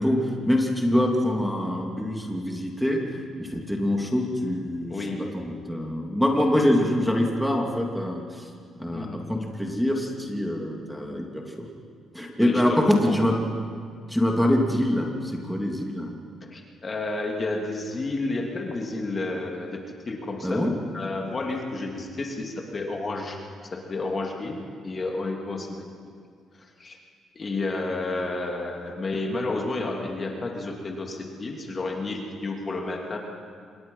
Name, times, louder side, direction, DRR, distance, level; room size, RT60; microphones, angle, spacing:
voice 1, 0.0-3.0 3.4-8.5 8.8-11.7 12.1-13.4 14.1-16.1 20.4-20.8, left 1 dB, ahead, 0 dB, 2.8 m, -25 dB
voice 2, 4.9-5.4 8.9-9.4 12.4-13.2 16.5-23.4 23.7-25.9 26.5-27.0 27.3-33.2, left 2 dB, 35° left, 1 dB, 3.0 m, -31 dB
26.5 x 22.0 x 5.7 m, 2.1 s
cardioid pair, 90°, 0 cm